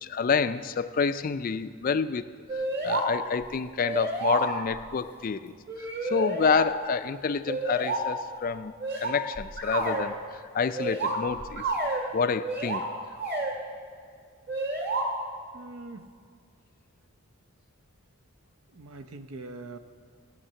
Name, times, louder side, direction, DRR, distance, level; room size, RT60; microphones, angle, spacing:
voice 1, 0.0-2.2 2.8-5.5 6.0-11.6 12.1-12.8, left 5 dB, 40° left, 13 dB, 0.3 m, -28 dB
sound 1, 2.5-3.1 3.4-3.5 3.8-4.8 5.7-6.7 7.5-8.0 8.8-10.0 10.7-12.0 12.4-12.8 13.2-13.5 14.5-15.0, right 2 dB, 45° right, 2.3 m, -30 dB
voice 2, 15.5-16.1 18.7-19.8, right 3 dB, 75° right, 9 dB, 0.7 m, -42 dB
16.5 x 6.6 x 8.7 m, 2.1 s
head